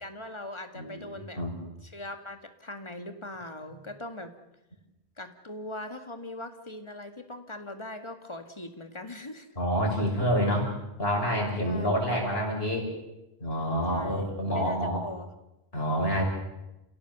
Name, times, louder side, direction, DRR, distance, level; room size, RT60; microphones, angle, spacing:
voice 1, 0.0-1.4 1.8-4.3 5.2-9.5 11.6-11.9 13.9-15.3, left 1 dB, 30° left, 7 dB, 2.0 m, -41 dB
voice 2, 0.7-1.1 1.4-1.5 9.6-10.7 11.0-12.9 13.4-15.0 15.7-16.2, equal, 75° left, -1 dB, 6.5 m, -27 dB
29.5 x 17.0 x 7.0 m, 0.94 s
omnidirectional pair, 1.0 m